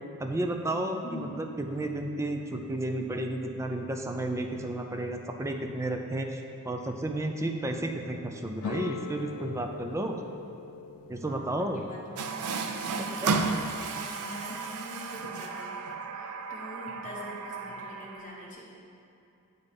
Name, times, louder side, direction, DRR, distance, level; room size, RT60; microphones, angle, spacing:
voice 1, 0.2-10.2 11.1-11.9 13.0-13.4, right 1 dB, 15° right, 4 dB, 0.4 m, -32 dB
voice 2, 1.0-1.4 11.2-13.1 13.7-18.8, left 1 dB, 35° left, -4 dB, 1.2 m, -45 dB
sound 1, 8.6-13.8, left 4 dB, 75° left, 0.4 m, -42 dB
Water tap faucet, 12.2-18.5, right 4 dB, 90° right, 0.5 m, -33 dB
7.3 x 4.1 x 5.2 m, 2.7 s
head